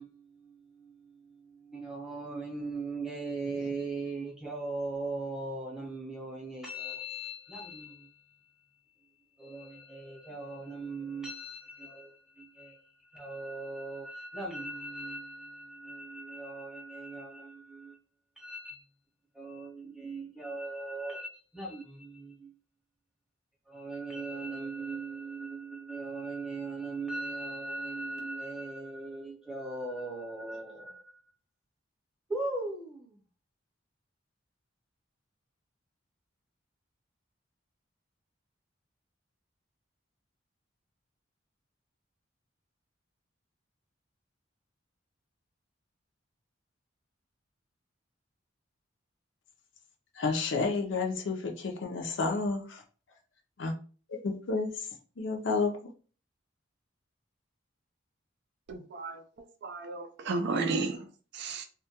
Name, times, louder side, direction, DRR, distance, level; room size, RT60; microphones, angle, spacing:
voice 1, 0.0-18.0 18.4-18.9 19.3-22.5 23.7-31.0 32.3-33.2, right 2 dB, 5° right, 0.8 m, -39 dB
voice 2, 50.2-52.8 53.6-53.7 54.1-54.9 55.2-55.8, left 4 dB, 65° left, 0.5 m, -31 dB
voice 3, 58.7-59.2 59.6-61.1 61.3-61.7, right 3 dB, 60° right, 0.3 m, -33 dB
2.2 x 2.2 x 2.7 m
head